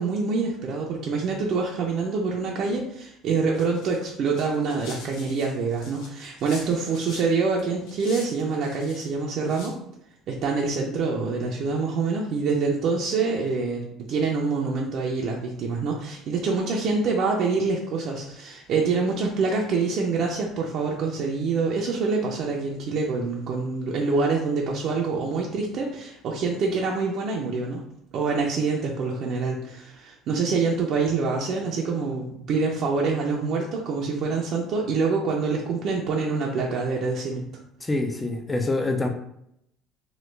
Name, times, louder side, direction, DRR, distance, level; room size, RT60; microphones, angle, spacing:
voice 1, 0.0-9.8 10.3-27.8 28.1-37.5, right 4 dB, 55° right, -1 dB, 0.5 m, -26 dB
sound 1, 3.5-7.3 7.6-9.1 9.4-9.7, left 2 dB, 90° left, 0.8 m, -44 dB
voice 2, 37.8-39.1, left 2 dB, 15° left, 4 dB, 0.3 m, -25 dB
3.0 x 2.2 x 3.2 m, 0.75 s
cardioid pair, 125°, 0 cm